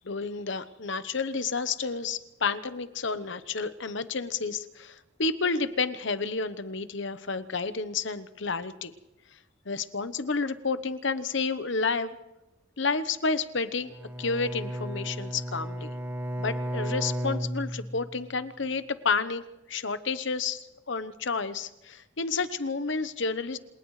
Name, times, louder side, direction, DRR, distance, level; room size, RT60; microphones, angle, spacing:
voice 1, 0.0-8.9 9.6-12.2 12.8-13.9 14.2-15.9 16.4-23.6, left 4 dB, 65° left, 12 dB, 1.0 m, -30 dB
Bowed string instrument, 13.9-18.2, equal, 10° right, 1.6 m, -34 dB
28.5 x 28.0 x 3.3 m, 1.1 s
head